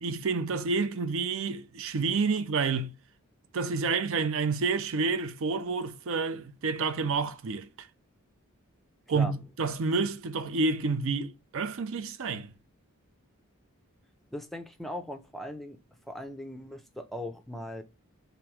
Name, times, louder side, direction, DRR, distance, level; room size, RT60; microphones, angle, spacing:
voice 1, 0.0-2.9 3.5-7.9 9.1-9.3 9.6-12.5, right 4 dB, 60° right, 0.5 m, -29 dB
voice 2, 14.3-15.8 16.1-17.8, left 1 dB, ahead, 0.4 m, -39 dB
3.4 x 3.0 x 4.6 m
head